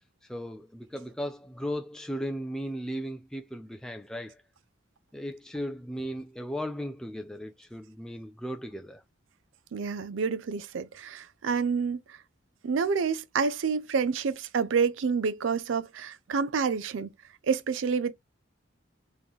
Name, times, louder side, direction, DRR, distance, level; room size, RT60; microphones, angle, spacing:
voice 1, 0.3-4.4 5.1-9.0, equal, 5° left, 0.3 m, -36 dB
voice 2, 9.7-12.0 12.6-17.1 17.5-18.1, right 5 dB, 80° right, 0.4 m, -28 dB
3.6 x 3.0 x 3.8 m
head